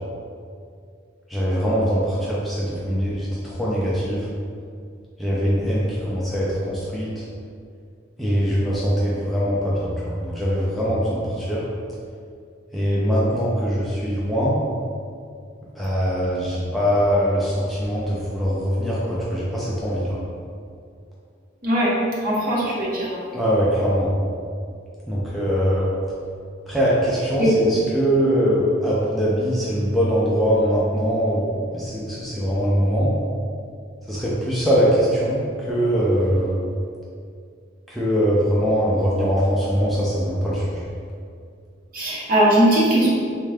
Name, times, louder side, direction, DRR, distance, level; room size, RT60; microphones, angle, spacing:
voice 1, 1.3-4.2 5.2-7.1 8.2-11.6 12.7-14.6 15.7-20.2 23.3-24.1 25.1-25.9 26.7-31.5 31.7-33.1 34.1-36.5 37.9-40.6, equal, ahead, -8 dB, 0.4 m, -22 dB
voice 2, 21.6-21.9 22.2-23.1 27.4-27.6 41.9-43.1, right 1 dB, 45° right, -6 dB, 0.8 m, -19 dB
3.6 x 2.2 x 3.3 m, 2.3 s
head